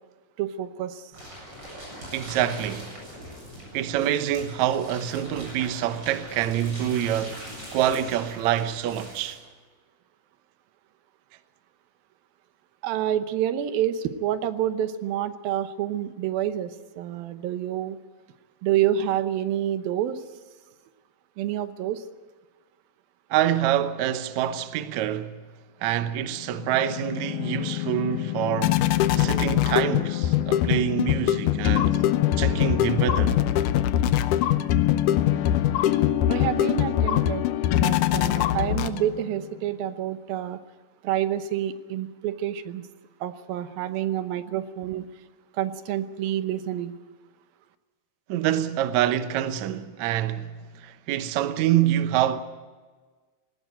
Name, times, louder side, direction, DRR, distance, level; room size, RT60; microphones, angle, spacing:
voice 1, 0.4-1.0 12.8-18.0 18.6-20.2 21.4-22.0 31.9-32.0 36.3-37.4 37.7-40.6 41.0-42.8 43.2-45.1 45.6-46.9, right 11 dB, 85° right, 2.8 m, -28 dB
sound 1, 1.1-9.3, equal, 30° right, 8.2 m, -42 dB
voice 2, 2.1-2.9 3.7-7.5 7.7-9.4 23.3-25.4 25.8-32.0 32.4-33.4 48.3-52.4, right 11 dB, 65° right, 1.9 m, -26 dB
sound 2, 26.5-39.3, left 12 dB, 75° left, 2.1 m, -23 dB
19.0 x 18.0 x 9.1 m
omnidirectional pair, 4.1 m